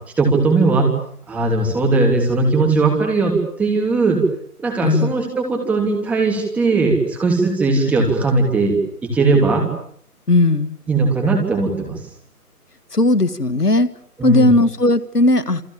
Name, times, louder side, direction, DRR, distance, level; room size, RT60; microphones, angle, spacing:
voice 1, 0.2-0.9 1.3-4.2 4.6-8.8 9.0-9.6 10.9-12.0 14.2-14.5, right 3 dB, 5° right, 1 dB, 3.2 m, -18 dB
voice 2, 4.8-5.1 10.3-10.8 12.9-13.9 14.2-15.6, left 2 dB, 75° left, 15 dB, 1.9 m, -16 dB
29.0 x 27.5 x 7.2 m, 0.63 s
figure-of-eight pair, 155°, 46 cm